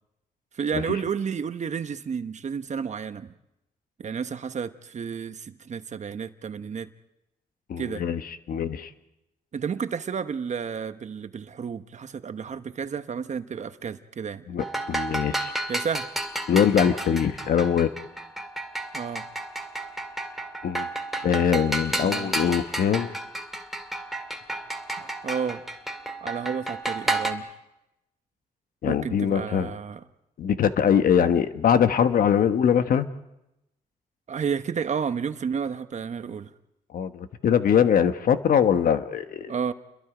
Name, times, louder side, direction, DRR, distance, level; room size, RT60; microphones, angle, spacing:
voice 1, 0.5-3.3 4.0-6.9 7.8-8.0 9.5-14.4 15.7-16.1 18.9-19.2 21.9-22.3 25.0-25.6 26.2-27.5 28.8-30.0 34.3-36.5 39.5-39.7, right 6 dB, 50° right, 10 dB, 1.1 m, -31 dB
voice 2, 7.7-8.2 8.5-8.9 14.5-15.5 16.5-17.9 20.6-20.9 21.2-23.1 28.8-29.7 30.4-33.1 36.9-39.5, left 8 dB, 70° left, 10 dB, 1.2 m, -22 dB
sound 1, 14.6-27.3, right 1 dB, ahead, 2.1 m, -32 dB
29.5 x 22.0 x 5.0 m, 0.90 s
cardioid pair, 85°, 15 cm